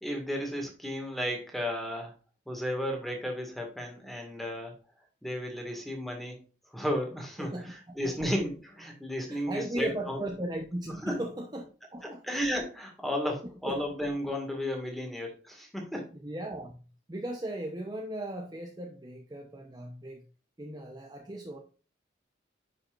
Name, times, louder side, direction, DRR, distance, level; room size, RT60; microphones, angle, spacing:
voice 1, 0.0-2.1 2.5-4.8 5.2-6.4 6.7-10.2 11.0-11.1 12.0-16.1, equal, ahead, 1 dB, 1.9 m, -33 dB
voice 2, 7.4-8.3 9.3-12.2 13.7-13.8 16.2-20.2 20.6-21.6, right 1 dB, 20° right, 1 dB, 0.8 m, -37 dB
9.9 x 5.5 x 2.5 m, 0.37 s
head